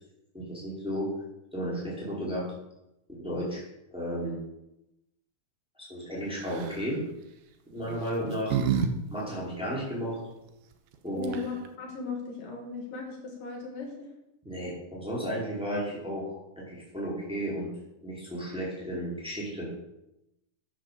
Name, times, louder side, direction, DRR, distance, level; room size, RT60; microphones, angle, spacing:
voice 1, 0.3-1.1 1.5-2.5 3.1-3.6 3.9-4.4 5.8-7.0 7.6-8.8 9.1-10.2 11.0-11.3 14.4-17.7 18.0-19.7, equal, ahead, -6 dB, 4.3 m, -33 dB
sound 1, 6.4-6.8 7.8-8.9 9.2-9.3 10.9-11.0 11.2-11.7, right 7 dB, 85° right, 2.6 m, -29 dB
voice 2, 11.1-14.1, left 4 dB, 70° left, 0 dB, 3.7 m, -37 dB
9.9 x 7.8 x 6.8 m, 0.89 s
omnidirectional pair, 3.9 m